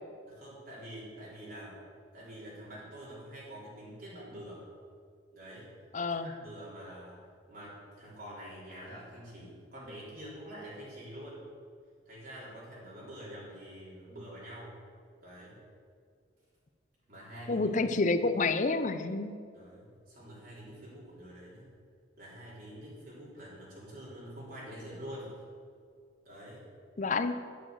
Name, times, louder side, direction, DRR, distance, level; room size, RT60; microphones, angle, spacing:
voice 1, 0.2-1.8 2.1-4.7 5.3-5.7 6.1-7.2 7.5-11.5 12.1-14.8 15.2-15.6 17.1-17.8 19.5-21.7 22.2-25.4 26.2-26.7, equal, 50° right, -8 dB, 3.7 m, -46 dB
voice 2, 5.9-6.3 17.5-19.4 27.0-27.4, left 3 dB, 40° left, 10 dB, 0.6 m, -29 dB
10.5 x 10.0 x 6.4 m, 2.2 s
head